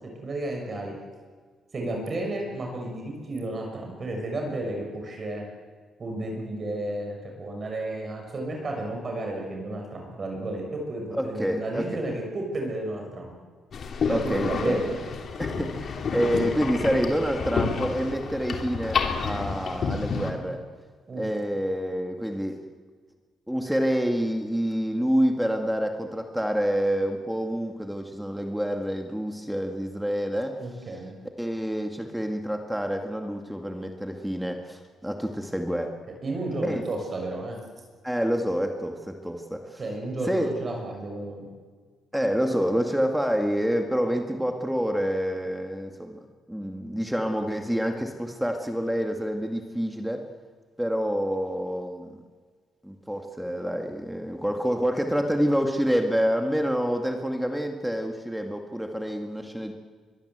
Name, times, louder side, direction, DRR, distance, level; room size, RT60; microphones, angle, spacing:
voice 1, 0.2-0.9 1.7-5.4 6.0-13.3 14.1-15.0 21.1-21.3 30.6-31.2 36.2-37.6 39.8-41.5, right 2 dB, 40° right, 1 dB, 6.3 m, -32 dB
voice 2, 11.1-11.9 14.1-14.8 15.4-20.6 21.1-22.6 23.5-30.6 31.4-35.9 36.6-36.8 38.0-39.8 40.3-40.6 42.1-46.2 46.5-50.2 50.8-52.2 52.8-59.7, equal, 5° right, 4 dB, 2.2 m, -27 dB
sound 1, 13.7-20.3, left 5 dB, 55° left, 3.2 m, -30 dB
23.0 x 22.5 x 8.2 m, 1.5 s
cardioid pair, 90°, 0 cm